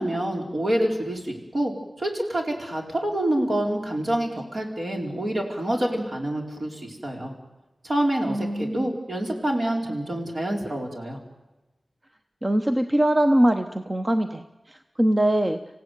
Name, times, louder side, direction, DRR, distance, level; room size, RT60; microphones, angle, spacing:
voice 1, 0.0-7.3 7.8-11.2, right 1 dB, 55° right, 1 dB, 4.7 m, -27 dB
voice 2, 8.3-8.9 12.4-15.6, right 1 dB, 30° right, 7 dB, 1.0 m, -22 dB
26.5 x 16.5 x 9.5 m, 1.1 s
wide cardioid pair, 65°, 0 cm